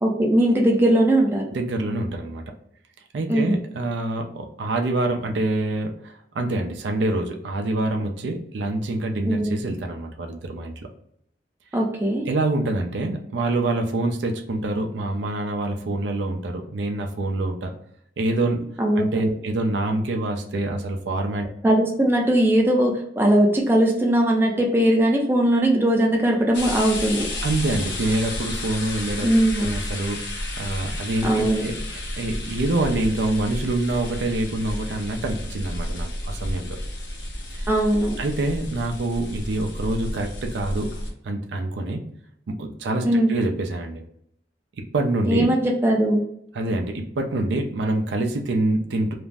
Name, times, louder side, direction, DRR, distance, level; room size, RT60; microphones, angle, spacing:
voice 1, 0.0-1.4 3.3-3.6 9.2-9.5 11.7-12.2 18.8-19.1 21.6-27.3 29.2-29.7 31.2-31.7 37.7-38.2 43.0-43.4 45.3-46.2, right 1 dB, 15° right, -1 dB, 0.4 m, -19 dB
voice 2, 1.5-2.4 3.1-10.9 12.3-17.7 18.2-18.6 19.0-21.5 27.4-29.3 29.6-31.8 32.2-36.8 37.5-37.7 38.2-40.9 41.2-42.0 42.5-44.0 44.8-45.5 46.5-49.1, right 2 dB, 75° right, 3 dB, 0.4 m, -26 dB
sound 1, 26.5-41.1, left 1 dB, 90° left, 0.8 m, -32 dB
2.5 x 2.0 x 3.3 m, 0.71 s
head